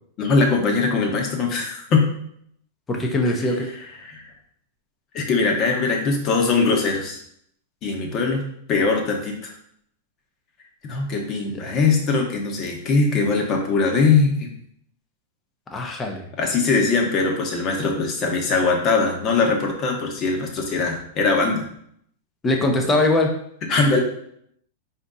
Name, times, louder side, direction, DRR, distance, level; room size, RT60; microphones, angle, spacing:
voice 1, 0.2-2.1 4.0-4.2 5.1-7.2 7.8-8.4 8.7-9.5 10.8-14.5 16.4-21.7 23.7-24.0, left 4 dB, 40° left, 1 dB, 1.1 m, -21 dB
voice 2, 2.9-3.7 11.7-11.8 15.7-16.2 22.4-23.3, left 2 dB, 20° left, 2 dB, 0.9 m, -21 dB
4.3 x 2.8 x 3.7 m, 0.68 s
hypercardioid pair, 120°, 0 cm